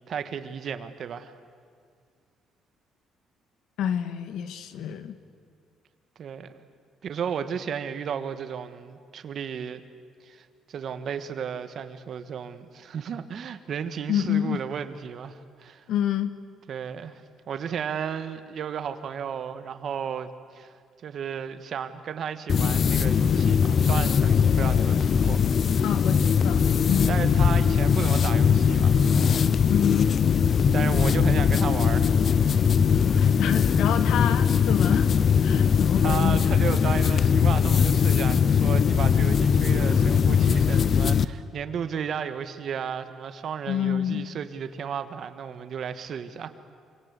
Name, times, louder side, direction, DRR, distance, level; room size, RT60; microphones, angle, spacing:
voice 1, 0.1-1.3 6.2-6.6 7.0-9.8 10.2-15.8 16.7-20.7 21.0-25.4 27.1-29.0 30.7-32.4 35.4-35.5 36.0-46.5, right 7 dB, 45° right, 10 dB, 1.4 m, -34 dB
voice 2, 3.8-5.2 14.1-14.6 15.9-16.3 25.8-27.2 29.7-30.3 33.2-35.1 35.4-36.5 43.7-44.3, left 9 dB, 70° left, 11 dB, 1.6 m, -28 dB
sound 1, 22.5-41.3, left 6 dB, 35° left, 0.6 m, -21 dB
27.5 x 25.5 x 8.3 m, 2.2 s
cardioid pair, 170°, 0 cm